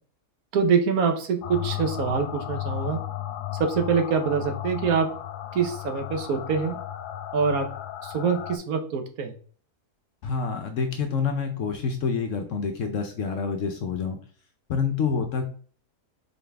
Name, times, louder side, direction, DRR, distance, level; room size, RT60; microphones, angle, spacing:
voice 1, 0.5-3.0 3.6-5.1 5.5-6.8 7.3-7.7 8.0-9.3, right 6 dB, 70° right, 5 dB, 1.2 m, -25 dB
sound 1, 1.4-8.6, left 12 dB, 85° left, 1.2 m, -34 dB
voice 2, 10.2-14.2 14.7-15.4, left 5 dB, 65° left, 6 dB, 0.9 m, -27 dB
4.1 x 3.8 x 3.4 m, 0.44 s
omnidirectional pair, 1.7 m